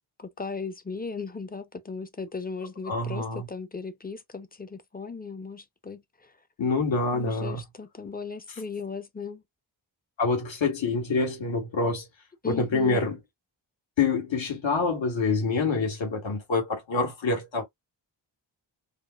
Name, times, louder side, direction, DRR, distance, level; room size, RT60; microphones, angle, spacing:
voice 1, 0.2-6.3 7.1-9.4 12.4-13.1, left 4 dB, 20° left, 0.6 m, -37 dB
voice 2, 2.9-3.5 6.6-7.6 10.2-12.0 12.4-13.2 14.0-17.6, left 4 dB, 70° left, 1.7 m, -26 dB
5.0 x 2.1 x 2.4 m
wide cardioid pair, 90°, 47 cm